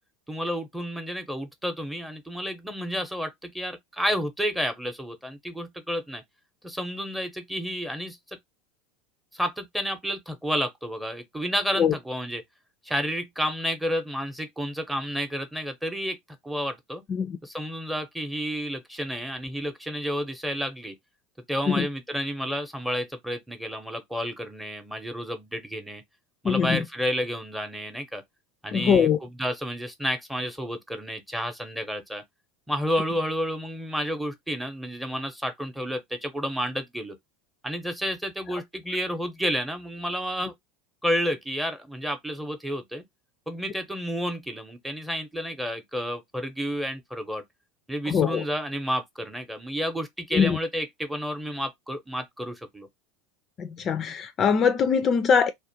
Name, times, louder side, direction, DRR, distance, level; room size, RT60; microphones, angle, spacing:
voice 1, 0.3-6.2 6.6-8.4 9.3-12.4 12.8-16.2 16.4-17.0 17.4-21.0 21.5-26.0 26.4-28.2 28.6-32.2 32.7-37.2 37.6-40.5 41.0-43.0 43.5-47.4 47.9-52.9, equal, 5° right, 0.7 m, -30 dB
voice 2, 26.4-26.9 28.7-29.2 38.5-38.6 48.1-48.4 50.3-50.6 53.6-55.5, left 6 dB, 40° left, 0.3 m, -22 dB
2.4 x 2.1 x 2.7 m
hypercardioid pair, 90°, 0 cm